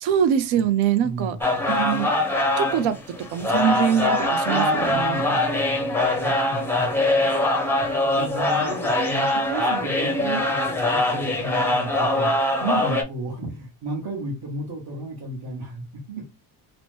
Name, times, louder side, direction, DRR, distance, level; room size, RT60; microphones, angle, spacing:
voice 1, 0.0-1.4 1.7-2.1 2.6-3.0 3.3-5.2, right 9 dB, 80° right, 0.6 m, -23 dB
voice 2, 1.0-1.4 4.5-6.9 7.5-7.6 8.1-12.3 12.6-16.3, right 2 dB, 60° right, 1.0 m, -33 dB
sound 1, 1.4-13.0, left 1 dB, 5° left, 0.4 m, -23 dB
2.9 x 2.1 x 3.0 m
cardioid pair, 155°, 46 cm